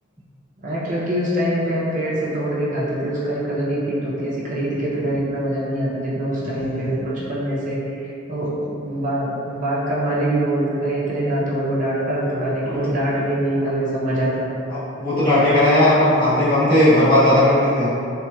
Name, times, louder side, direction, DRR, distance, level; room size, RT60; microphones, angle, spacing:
voice 1, 0.6-14.5, right 1 dB, 40° right, -7 dB, 0.5 m, -24 dB
voice 2, 6.5-6.9 11.4-11.5 12.6-13.0 14.7-18.0, left 1 dB, 25° left, -12 dB, 1.1 m, -17 dB
3.4 x 3.0 x 2.2 m, 2.7 s
head